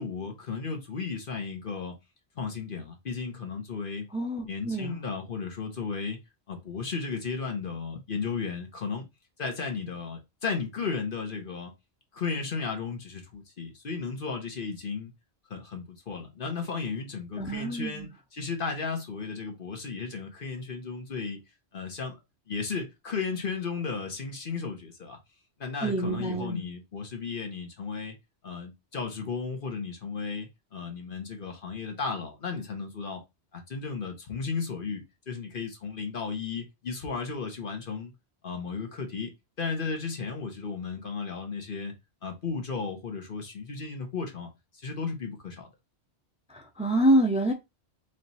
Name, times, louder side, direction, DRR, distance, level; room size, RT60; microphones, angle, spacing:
voice 1, 0.0-1.9 2.4-4.1 4.4-6.2 6.5-9.1 9.4-11.7 12.1-15.1 15.5-21.4 21.7-22.2 22.5-25.2 25.6-28.1 28.4-33.2 33.5-38.1 38.4-39.3 39.6-41.9 42.2-45.7, left 5 dB, 55° left, 1.1 m, -34 dB
voice 2, 4.1-5.0 17.4-18.1 25.8-26.6 46.5-47.5, right 1 dB, 5° right, 0.6 m, -26 dB
3.2 x 2.9 x 4.0 m
omnidirectional pair, 1.1 m